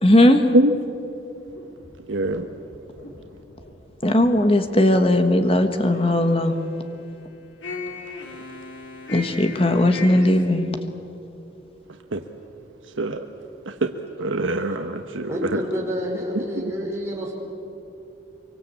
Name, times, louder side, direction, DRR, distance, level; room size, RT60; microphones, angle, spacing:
voice 1, 0.0-0.4 4.0-6.5 9.1-10.7, left 1 dB, 30° left, 7 dB, 1.5 m, -18 dB
sound 1, 1.5-5.5 5.9-6.8 7.6-10.5, left 2 dB, 70° left, 3.0 m, -38 dB
voice 2, 2.1-2.4 12.1-12.2 13.0-13.2 13.8-13.9 14.2-15.6 16.3-16.7, right 1 dB, 85° right, 6 dB, 1.1 m, -23 dB
voice 3, 15.3-17.3, equal, 15° right, -3 dB, 5.4 m, -28 dB
24.5 x 24.5 x 8.5 m, 2.9 s
head